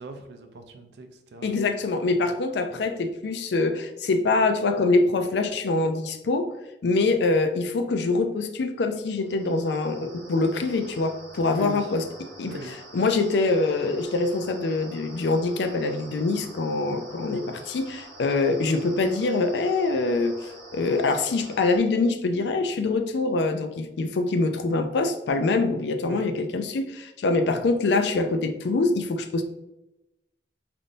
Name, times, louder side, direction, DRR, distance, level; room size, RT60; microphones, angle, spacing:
voice 1, 0.0-1.6 2.0-2.1 11.5-11.9 12.5-12.7 26.1-26.4, right 2 dB, 70° right, 6 dB, 0.4 m, -40 dB
voice 2, 1.4-6.5 6.8-12.0 12.4-29.4, left 3 dB, 75° left, 7 dB, 0.4 m, -24 dB
sound 1, 9.2-21.8, right 1 dB, 85° right, 1.0 m, -46 dB
3.5 x 2.5 x 2.5 m, 0.93 s
head